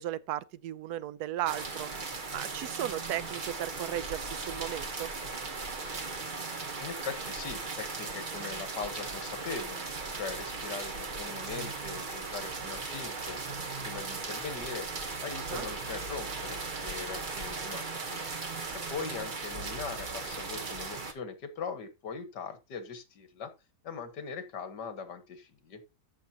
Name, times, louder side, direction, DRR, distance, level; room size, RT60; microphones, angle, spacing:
voice 1, 0.0-1.9 2.3-5.1 15.4-15.6, right 13 dB, 70° right, 1.0 m, -35 dB
sound 1, 1.5-21.1, right 4 dB, 35° right, 0.9 m, -37 dB
voice 2, 6.8-9.8 10.1-13.4 13.8-14.9 15.2-18.2 18.9-23.5 23.8-25.8, left 5 dB, 70° left, 1.9 m, -40 dB
14.0 x 6.1 x 2.8 m
omnidirectional pair, 1.9 m